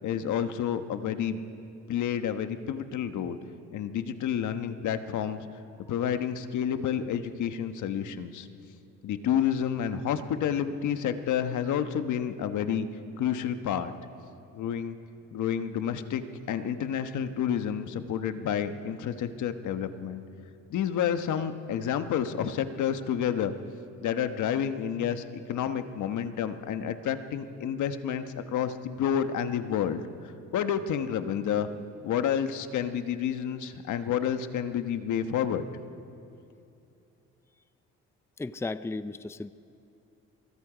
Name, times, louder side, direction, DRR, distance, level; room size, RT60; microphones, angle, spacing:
voice 1, 0.0-1.4 1.9-3.4 3.7-5.4 5.9-8.5 9.0-12.9 13.2-13.9 14.5-15.0 15.3-16.2 16.5-20.2 20.7-23.5 24.0-31.7 32.0-35.8, left 9 dB, 75° left, 9 dB, 1.3 m, -29 dB
voice 2, 38.4-39.5, left 3 dB, 10° left, 14 dB, 0.5 m, -35 dB
25.0 x 22.5 x 5.1 m, 2.6 s
cardioid pair, 90°, 30 cm